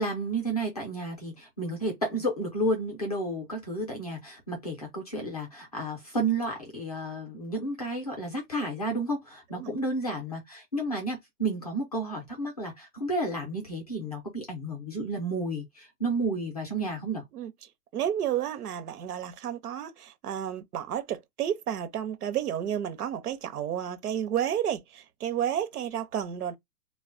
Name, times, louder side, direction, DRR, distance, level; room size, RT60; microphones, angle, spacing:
voice 1, 0.0-17.2, right 1 dB, 25° left, 0.5 m, -31 dB
voice 2, 17.9-26.5, right 10 dB, 65° right, 0.7 m, -31 dB
2.2 x 2.0 x 3.6 m
hypercardioid pair, 165°, 49 cm